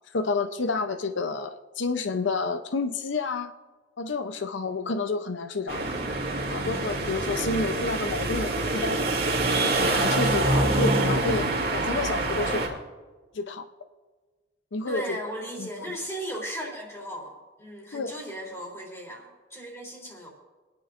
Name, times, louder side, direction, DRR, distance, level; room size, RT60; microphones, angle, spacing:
voice 1, 0.1-3.5 4.0-5.9 6.5-9.1 9.6-11.5 11.7-12.8 13.3-13.7 14.7-15.0 15.6-16.0 17.9-18.1, left 3 dB, 90° left, 9 dB, 0.6 m, -30 dB
sound 1, 5.7-12.7, right 2 dB, 55° right, 2.5 m, -26 dB
voice 2, 14.9-20.3, equal, 15° left, -2 dB, 3.2 m, -36 dB
26.5 x 10.0 x 2.5 m, 1.4 s
head